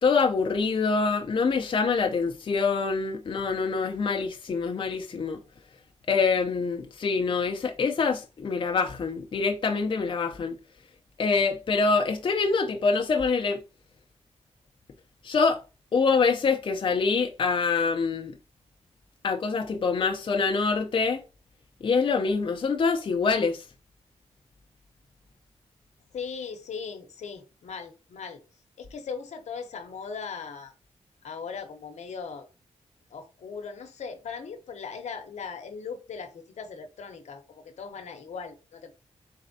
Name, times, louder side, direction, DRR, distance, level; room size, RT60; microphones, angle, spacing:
voice 1, 0.0-5.4 6.1-10.5 11.2-13.6 15.2-15.6 15.9-18.4 19.2-21.2 21.8-23.6, left 4 dB, 45° left, 0.4 m, -25 dB
voice 2, 26.1-28.4 28.8-30.7 31.2-32.5 33.1-38.9, left 5 dB, 85° left, 0.7 m, -39 dB
4.2 x 3.3 x 2.6 m
wide cardioid pair, 95°, 12 cm